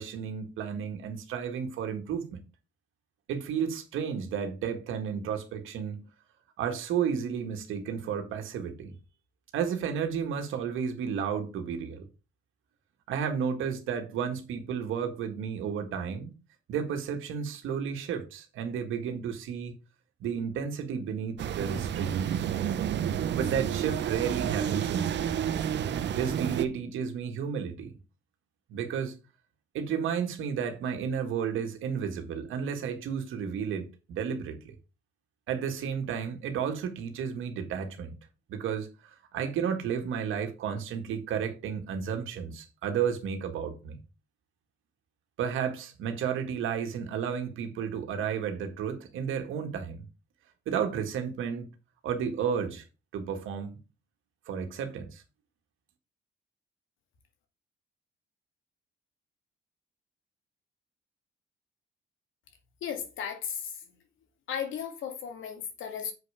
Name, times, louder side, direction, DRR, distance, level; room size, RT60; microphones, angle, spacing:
voice 1, 0.0-2.4 3.3-6.1 6.6-8.9 9.5-12.1 13.1-16.3 16.7-19.7 20.2-22.2 23.3-25.5 26.1-27.9 28.7-29.2 29.7-34.7 35.5-38.2 38.5-44.0 45.4-50.0 50.7-51.7 52.0-52.8 53.1-53.8 54.5-55.2, right 7 dB, 85° right, 1.8 m, -32 dB
sound 1, 21.4-26.6, right 9 dB, 65° right, 0.9 m, -30 dB
voice 2, 62.8-63.7 64.5-66.1, left 8 dB, 80° left, 2.3 m, -35 dB
7.5 x 5.5 x 5.0 m
cardioid pair, 90°, 20 cm